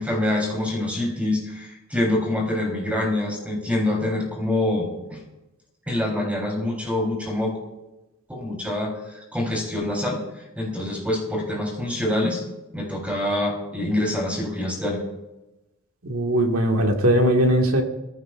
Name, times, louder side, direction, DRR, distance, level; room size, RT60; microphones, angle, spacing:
voice 1, 0.0-5.2 5.9-7.6 8.3-10.2 10.6-12.4 12.7-15.0, left 1 dB, 5° right, -1 dB, 3.8 m, -25 dB
voice 2, 16.0-17.8, right 1 dB, 85° right, 2 dB, 1.9 m, -19 dB
22.0 x 14.5 x 2.5 m, 0.99 s
head